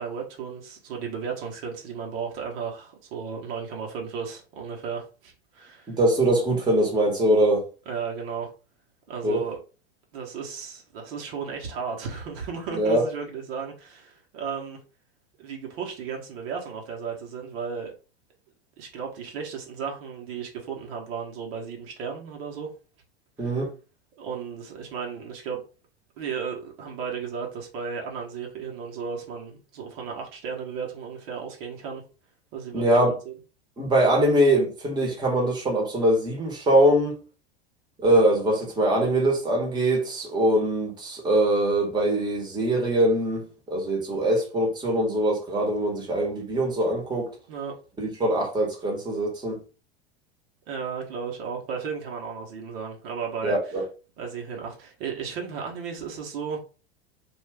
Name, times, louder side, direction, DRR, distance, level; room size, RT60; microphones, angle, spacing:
voice 1, 0.0-5.9 7.9-8.5 9.1-9.6 10.1-14.8 15.4-17.9 18.8-22.7 23.4-23.5 24.2-25.6 26.2-32.0 32.5-33.3 47.5-47.7 50.7-53.8 54.2-56.6, right 6 dB, 65° right, 1.0 m, -34 dB
voice 2, 5.9-7.6 9.2-9.4 12.7-13.0 23.4-23.7 32.7-33.2 33.8-37.2 38.0-47.3 48.0-49.6 53.4-53.8, right 1 dB, 15° right, 1.0 m, -22 dB
2.4 x 2.4 x 3.2 m
hypercardioid pair, 100°, 32 cm